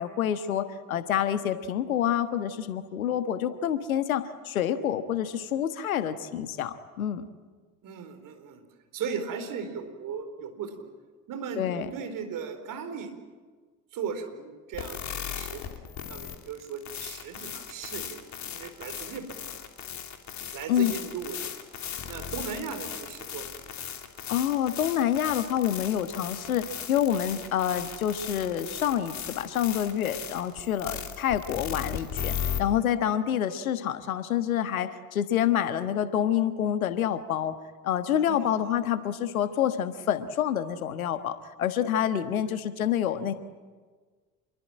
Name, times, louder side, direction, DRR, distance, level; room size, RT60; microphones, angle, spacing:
voice 1, 0.0-7.3 11.6-11.9 20.7-20.9 24.3-37.5 37.8-43.3, left 10 dB, 75° left, 12 dB, 1.5 m, -27 dB
voice 2, 7.8-8.6 8.9-10.9 11.3-13.1 13.9-18.3 18.5-19.2 19.5-19.6 20.5-21.5 22.1-23.5 27.3-27.4 30.8-31.0 33.1-33.2 38.3-38.7, right 6 dB, 50° right, 7 dB, 4.3 m, -37 dB
sound 1, 14.7-32.6, left 8 dB, 40° left, 3.1 m, -37 dB
27.5 x 22.5 x 8.9 m, 1.4 s
figure-of-eight pair, 55°, 42 cm